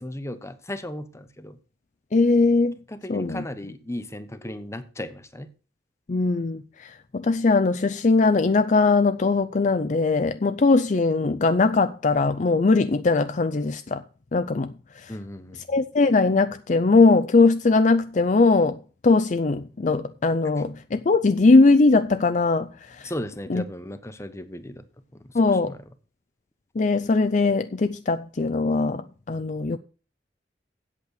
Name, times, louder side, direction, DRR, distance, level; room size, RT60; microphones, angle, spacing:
voice 1, 0.0-1.6 2.9-5.5 15.1-15.6 23.0-24.8 25.1-25.8, left 1 dB, 15° left, 1.0 m, -36 dB
voice 2, 2.1-2.8 3.1-3.5 6.1-14.0 14.3-15.1 15.7-23.1 23.5-23.6 25.3-25.7 26.8-29.8, left 3 dB, 45° left, 0.5 m, -20 dB
8.5 x 8.1 x 6.6 m
head